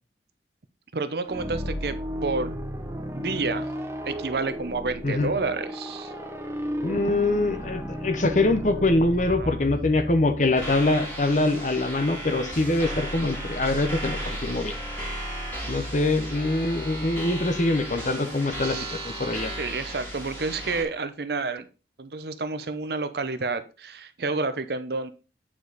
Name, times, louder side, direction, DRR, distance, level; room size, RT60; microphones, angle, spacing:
voice 1, 0.9-2.5 3.2-3.7 4.1-6.1 9.3-9.5 18.6-21.7 22.0-25.1, right 3 dB, 65° right, 0.7 m, -30 dB
sound 1, 1.2-11.0, equal, 15° right, 0.9 m, -34 dB
voice 2, 6.8-14.7 15.7-19.5, left 2 dB, 45° left, 0.9 m, -24 dB
sound 2, 10.5-20.8, equal, 10° left, 2.6 m, -34 dB
8.8 x 4.8 x 4.0 m
head